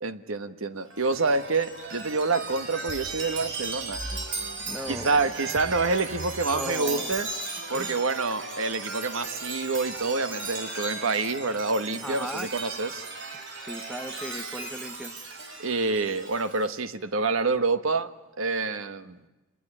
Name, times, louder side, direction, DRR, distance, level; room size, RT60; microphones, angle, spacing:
voice 1, 0.0-4.0 4.9-7.3 7.7-13.1 15.6-18.1 18.4-19.2, right 3 dB, 80° right, 12 dB, 1.4 m, -27 dB
Chime, 0.8-16.7, right 3 dB, 60° right, 4.6 m, -36 dB
voice 2, 4.6-5.3 6.5-7.1 7.7-8.0 12.0-12.5 13.3-15.1, equal, ahead, 9 dB, 1.4 m, -37 dB
27.5 x 21.0 x 9.9 m, 1.1 s
head